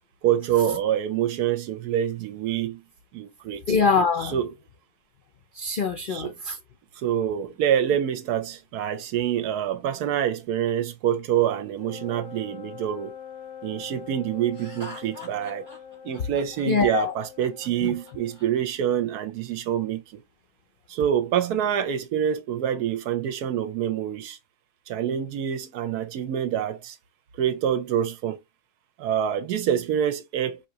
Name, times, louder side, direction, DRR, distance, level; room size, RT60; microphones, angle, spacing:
voice 1, 0.2-2.8 3.1-3.6 4.3-4.5 6.1-6.3 7.0-13.1 13.6-15.7 16.0-20.0 20.9-24.4 24.9-26.9 27.4-28.4 29.0-30.6, right 10 dB, 75° right, 1.2 m, -26 dB
voice 2, 3.7-4.4 5.5-6.6 16.7-17.1 17.8-18.0, left 5 dB, 85° left, 0.4 m, -24 dB
Wind instrument woodwind instrument, 11.8-18.4, left 8 dB, 60° left, 1.5 m, -43 dB
Laughter, 14.5-18.5, left 1 dB, 10° right, 1.5 m, -44 dB
4.8 x 2.9 x 2.7 m
omnidirectional pair, 1.7 m